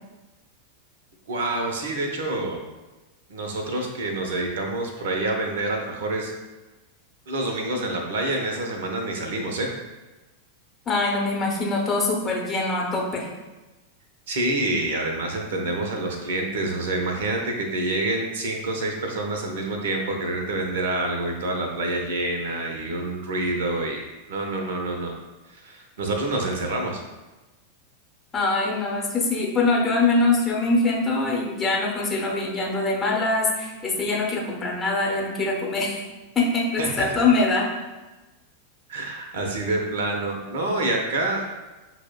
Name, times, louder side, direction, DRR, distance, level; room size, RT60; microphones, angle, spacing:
voice 1, 1.3-2.6 3.3-6.3 7.3-9.7 14.3-24.0 24.3-25.1 25.5-27.0 36.8-37.2 38.9-41.4, right 2 dB, 60° right, 2 dB, 0.5 m, -27 dB
voice 2, 10.9-13.3 28.3-36.0 36.3-37.7, left 3 dB, 20° left, -2 dB, 0.7 m, -23 dB
5.8 x 2.0 x 2.2 m, 1.1 s
figure-of-eight pair, 90°, 0 cm